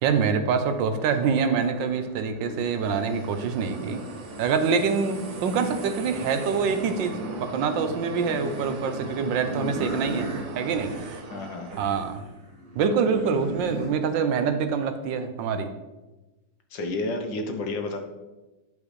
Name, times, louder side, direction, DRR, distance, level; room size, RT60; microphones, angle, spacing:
voice 1, 0.0-4.0 4.4-7.1 7.4-10.9 11.8-12.2 12.8-15.7, right 6 dB, 80° right, 8 dB, 1.4 m, -25 dB
sound 1, 0.6-13.9, right 1 dB, 35° right, 2.0 m, -40 dB
sound 2, 2.5-12.3, right 3 dB, 55° right, 1.2 m, -38 dB
voice 2, 11.3-11.9 16.7-18.0, left 2 dB, 90° left, 5 dB, 1.7 m, -31 dB
11.0 x 5.1 x 3.2 m, 1.1 s
omnidirectional pair, 2.0 m